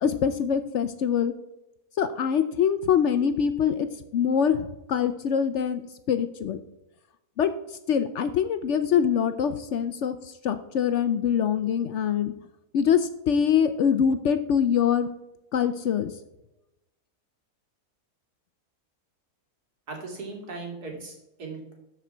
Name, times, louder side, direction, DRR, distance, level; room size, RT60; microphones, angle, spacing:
voice 1, 0.0-1.3 2.0-3.9 4.1-5.8 6.1-6.6 7.4-12.3 12.7-15.1 15.5-16.1, left 8 dB, 65° left, 11 dB, 0.7 m, -24 dB
voice 2, 19.9-21.7, right 3 dB, 80° right, 1 dB, 2.7 m, -38 dB
12.5 x 5.0 x 4.4 m, 0.92 s
omnidirectional pair, 1.6 m